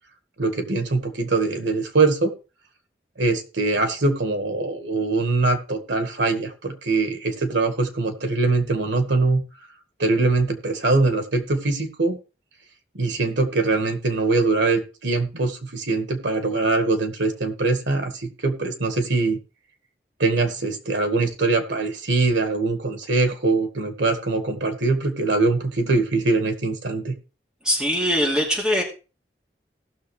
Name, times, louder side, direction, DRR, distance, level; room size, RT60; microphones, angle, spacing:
voice 1, 0.4-2.3 3.2-9.4 10.0-12.2 13.0-19.4 20.2-27.1, right 3 dB, 90° right, 8 dB, 1.7 m, -22 dB
voice 2, 27.6-28.8, equal, 5° right, -2 dB, 2.7 m, -21 dB
18.0 x 6.4 x 3.3 m, 0.33 s
head